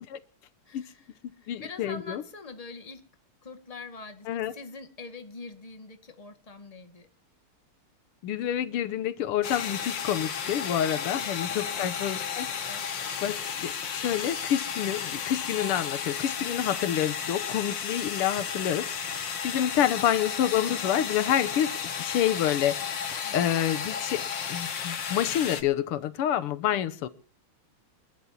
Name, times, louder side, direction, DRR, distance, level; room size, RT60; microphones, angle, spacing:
voice 1, 0.7-3.0 3.4-7.1 11.2-12.0 12.7-12.8 19.5-19.6 23.2-23.4 26.6-26.8, left 3 dB, 15° left, 6 dB, 1.9 m, -44 dB
voice 2, 1.5-2.2 4.3-4.5 8.2-12.5 13.2-22.8 23.3-24.2 24.5-27.1, left 10 dB, 90° left, 14 dB, 1.8 m, -28 dB
sound 1, 9.4-25.6, left 7 dB, 60° left, 2.2 m, -33 dB
29.5 x 11.5 x 2.9 m, 0.39 s
omnidirectional pair, 2.4 m